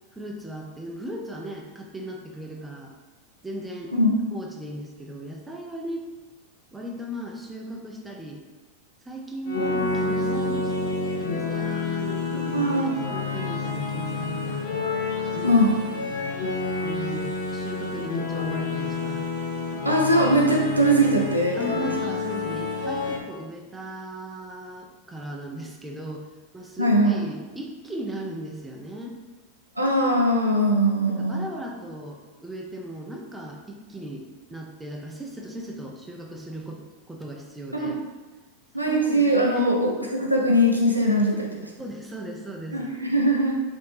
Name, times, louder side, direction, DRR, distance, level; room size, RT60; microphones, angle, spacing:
voice 1, 0.1-2.9 3.4-3.9 4.3-6.0 6.7-8.4 9.0-10.7 11.2-14.7 15.3-15.6 16.8-19.3 21.6-26.3 26.5-29.2 31.1-38.0 38.9-39.3 39.5-39.6 41.2-41.3 41.8-42.9, right 1 dB, 10° right, 0 dB, 0.3 m, -37 dB
sound 1, 9.5-23.2, left 3 dB, 60° left, 0.5 m, -29 dB
voice 2, 12.5-12.9 15.4-15.8 19.8-21.9 26.8-27.2 29.8-31.4 37.8-37.9 38.7-41.5 42.7-43.6, equal, 85° right, -1 dB, 0.4 m, -21 dB
2.5 x 2.0 x 3.1 m, 1.2 s
figure-of-eight pair, 90°, 0 cm